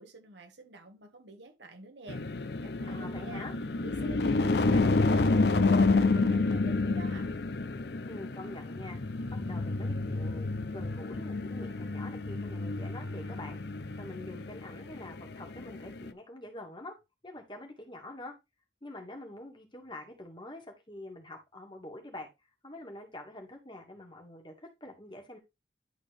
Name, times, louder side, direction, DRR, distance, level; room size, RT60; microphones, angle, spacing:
voice 1, 0.0-3.5 3.8-7.3, right 3 dB, 80° right, 1.6 m, -48 dB
sound 1, 2.1-16.1, left 3 dB, 65° left, 0.6 m, -29 dB
voice 2, 2.9-3.5 8.1-9.0 9.5-13.6 14.0-17.0 17.2-18.3 18.8-22.3 22.6-25.4, left 1 dB, 25° left, 1.9 m, -45 dB
11.0 x 4.1 x 3.4 m
head